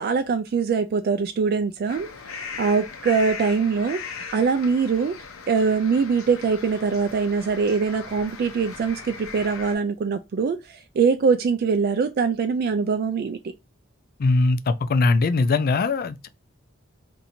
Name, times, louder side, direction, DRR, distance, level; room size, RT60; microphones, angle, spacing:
voice 1, 0.0-2.1 2.6-5.1 5.5-13.4, right 5 dB, 50° right, 0.3 m, -23 dB
sound 1, 1.9-9.8, left 5 dB, 85° left, 0.7 m, -38 dB
voice 2, 14.2-16.3, left 3 dB, 45° left, 0.4 m, -21 dB
2.7 x 2.7 x 4.1 m
head